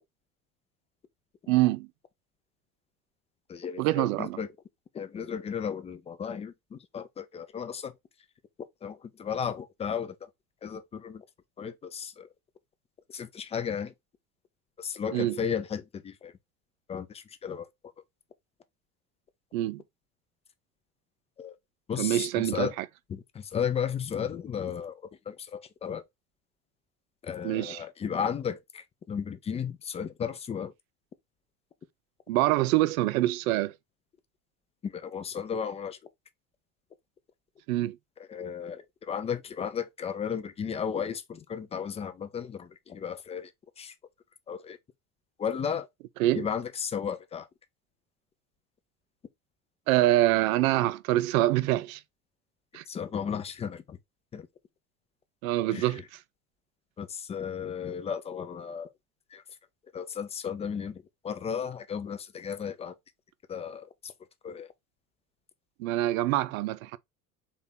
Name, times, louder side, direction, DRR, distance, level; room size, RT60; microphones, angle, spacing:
voice 1, 1.5-1.9 3.8-4.4 15.1-15.4 19.5-19.8 22.0-22.7 27.4-27.8 32.3-33.7 37.7-38.0 46.2-46.5 49.9-52.0 52.7-52.8 55.4-56.2 65.8-67.0, right 16 dB, 60° right, 0.6 m, -25 dB
voice 2, 3.5-4.5 4.9-7.9 8.8-10.2 10.6-11.2 11.6-12.3 13.1-13.9 14.8-16.3 16.9-17.7 21.4-21.6 21.9-22.7 23.1-26.0 27.2-30.7 34.8-36.0 38.3-43.5 43.8-43.9 44.5-44.8 45.4-45.9 46.3-47.5 52.9-54.0 54.3-54.5 55.7-55.9 57.0-58.9 59.3-59.4 59.9-62.9 63.5-64.1 64.4-64.7, left 7 dB, 15° left, 0.4 m, -34 dB
4.4 x 2.9 x 3.7 m
figure-of-eight pair, 70°, 46 cm